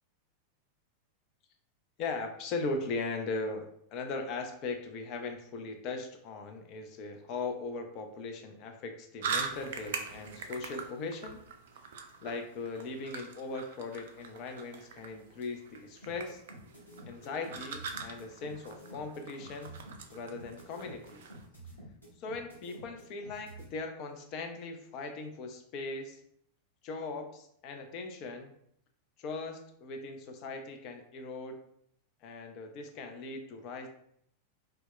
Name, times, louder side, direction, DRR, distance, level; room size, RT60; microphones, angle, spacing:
voice 1, 2.0-11.4 12.2-16.4 17.1-19.7 20.1-21.2 22.2-26.2 26.8-28.5 29.2-31.6 32.2-33.9, left 3 dB, 40° left, 4 dB, 0.4 m, -39 dB
sound 1, 9.2-21.5, right 5 dB, 60° right, 0.3 m, -43 dB
sound 2, 16.0-23.7, right 2 dB, 85° left, 0.9 m, -49 dB
2.2 x 2.1 x 3.7 m, 0.70 s
figure-of-eight pair, 90°, 0 cm